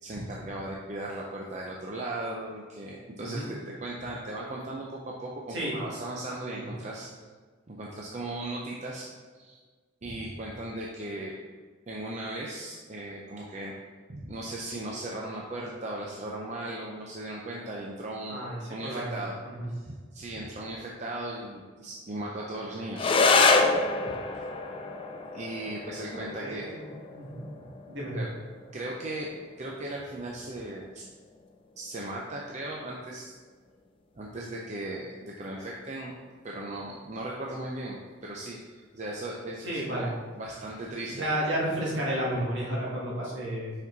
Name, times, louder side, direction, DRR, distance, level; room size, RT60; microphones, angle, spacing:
voice 1, 0.0-7.1 7.7-9.1 9.3-9.6 10.0-11.4 11.9-13.7 14.1-19.4 19.7-23.1 25.3-26.7 28.1-28.3 28.7-29.3 29.6-31.1 31.8-33.3 34.1-36.1 36.4-41.4 41.7-41.8, right 1 dB, 35° right, -2 dB, 0.5 m, -37 dB
voice 2, 3.2-3.5 5.5-5.8 6.5-6.6 18.3-19.2 19.5-19.7 26.1-26.5 27.1-27.4 27.9-28.3 39.6-40.1 41.2-43.7, right 1 dB, 65° right, -5 dB, 1.9 m, -32 dB
sound 1, 22.9-31.9, left 3 dB, 25° left, 0.4 m, -28 dB
5.3 x 5.1 x 3.9 m, 1.5 s
head